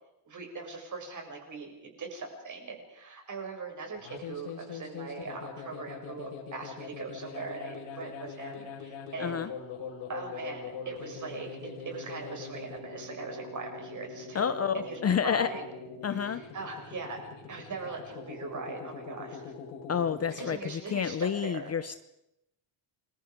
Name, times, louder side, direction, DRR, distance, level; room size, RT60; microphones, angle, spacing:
voice 1, 0.3-9.5 10.1-15.6 16.0-17.2 17.5-19.5 20.3-21.7, right 4 dB, 35° right, 2 dB, 7.3 m, -40 dB
sound 1, 3.9-20.5, left 6 dB, 75° left, 5.8 m, -43 dB
voice 2, 14.3-15.5 16.0-16.4 19.9-22.0, left 7 dB, 30° left, 12 dB, 0.8 m, -29 dB
29.0 x 23.0 x 5.2 m, 0.88 s
cardioid pair, 130°, 49 cm